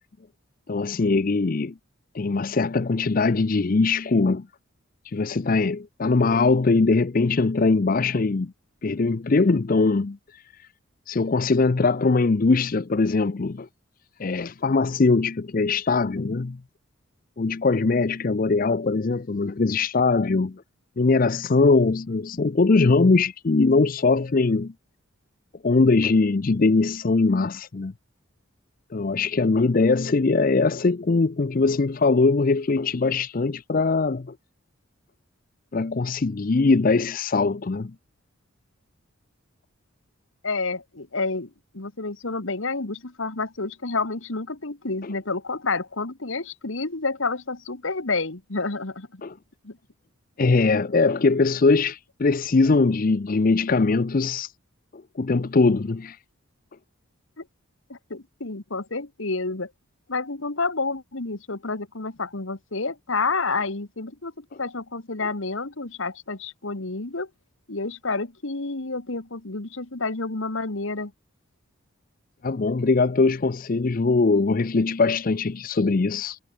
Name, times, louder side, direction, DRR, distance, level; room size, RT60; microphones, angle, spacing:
voice 1, 0.7-1.7 2.1-4.5 5.0-8.5 8.8-10.4 11.1-13.7 14.2-16.6 17.4-20.6 21.0-24.7 25.6-27.9 28.9-34.3 35.7-37.9 45.0-45.1 49.2-49.3 50.4-54.5 55.2-56.2 72.4-76.4, left 3 dB, 40° left, 0.5 m, -21 dB
voice 2, 40.4-49.2 49.6-49.8 57.4-57.5 57.9-59.7 60.1-67.3 67.7-71.1, left 3 dB, 65° left, 1.6 m, -29 dB
head